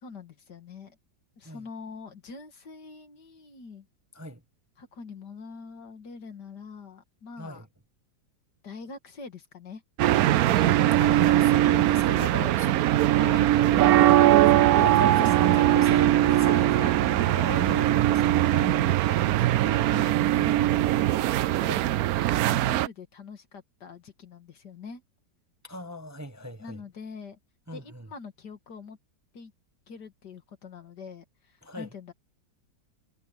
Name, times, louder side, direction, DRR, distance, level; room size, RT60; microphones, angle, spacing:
voice 1, 0.0-1.0 1.4-3.9 4.8-7.7 8.6-9.8 10.5-11.0 11.5-11.6 12.1-12.6 13.1-14.8 15.1-15.2 15.7-15.8 16.2-17.8 19.1-22.1 22.5-25.0 26.6-27.4 27.7-29.0 29.3-29.5 29.9-32.1, left 4 dB, 65° left, 2.5 m, -44 dB
sound 1, 10.0-22.9, right 14 dB, 70° right, 0.9 m, -21 dB
voice 2, 11.0-12.8 13.3-13.7 14.7-18.9 20.4-20.6 21.6-21.9 25.6-26.8 27.7-28.1 31.6-31.9, left 1 dB, 10° right, 1.2 m, -38 dB
sound 2, 13.9-19.0, left 3 dB, 50° left, 2.0 m, -41 dB
omnidirectional pair, 1.9 m